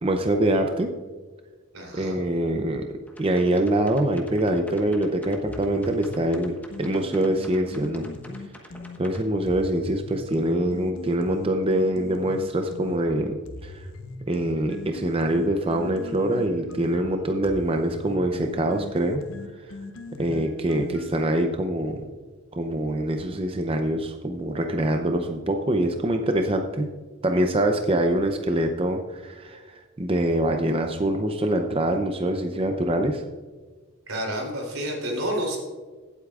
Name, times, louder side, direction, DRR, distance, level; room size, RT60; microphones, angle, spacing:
voice 1, 0.0-0.9 1.9-2.8 3.2-8.1 9.0-13.9 14.3-19.2 20.2-22.0 22.5-26.9 27.2-33.2, right 1 dB, 25° right, 5 dB, 0.6 m, -24 dB
voice 2, 1.7-2.2 34.1-35.6, equal, 85° right, 0 dB, 3.5 m, -29 dB
sound 1, 3.1-9.2, left 1 dB, 10° left, 1.2 m, -46 dB
sound 2, 5.5-9.0 9.5-13.0 13.5-21.3, left 2 dB, 80° left, 1.0 m, -40 dB
17.0 x 8.2 x 2.4 m, 1.4 s
head